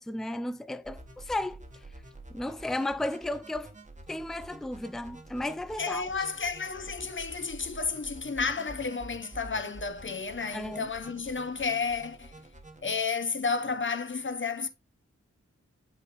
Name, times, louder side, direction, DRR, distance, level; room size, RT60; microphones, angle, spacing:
voice 1, 0.0-1.6 2.3-3.7 4.1-6.1 10.5-10.9, left 1 dB, ahead, 0.5 m, -34 dB
sound 1, 0.8-12.8, right 2 dB, 25° right, 1.4 m, -48 dB
voice 2, 5.8-12.3 12.8-14.7, left 5 dB, 40° left, 0.9 m, -32 dB
8.1 x 5.2 x 3.0 m
wide cardioid pair, 50°, 29 cm